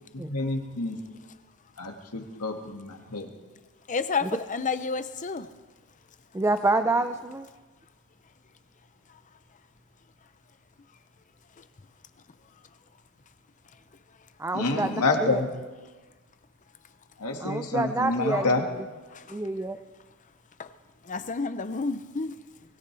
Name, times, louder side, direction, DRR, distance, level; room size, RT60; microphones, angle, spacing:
voice 1, 0.1-1.0 1.8-3.3 6.9-7.0 14.5-15.5 17.2-18.6, left 3 dB, 80° left, 3 dB, 2.0 m, -28 dB
voice 2, 3.9-5.5 19.1-19.2 20.6-20.7 21.1-22.4, left 4 dB, 35° left, 12 dB, 0.7 m, -30 dB
voice 3, 6.3-7.5 14.4-15.4 17.4-18.6 19.3-19.8, right 2 dB, 10° right, 9 dB, 0.4 m, -27 dB
23.0 x 16.5 x 3.4 m, 1.3 s
head